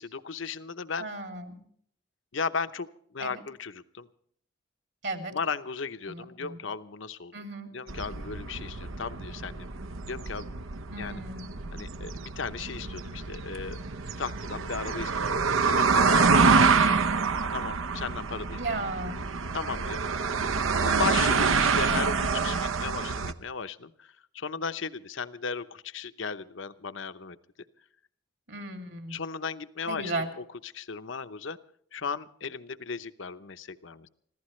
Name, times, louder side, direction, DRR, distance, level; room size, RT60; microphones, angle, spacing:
voice 1, 0.0-1.1 2.3-4.1 5.3-7.4 7.7-9.7 10.0-11.2 11.7-13.8 14.2-17.1 17.5-19.0 19.5-20.2 20.8-27.4 29.1-31.6 31.9-34.1, left 5 dB, 70° left, 12 dB, 0.8 m, -36 dB
voice 2, 1.0-1.6 3.2-3.4 5.0-5.3 6.1-6.6 7.3-7.7 10.9-11.5 16.2-16.6 18.5-19.2 28.5-29.2 29.9-30.3, right 2 dB, 60° right, 5 dB, 2.8 m, -35 dB
sound 1, 7.9-23.3, right 4 dB, 85° right, 0.9 m, -27 dB
26.0 x 15.5 x 3.2 m, 0.64 s
head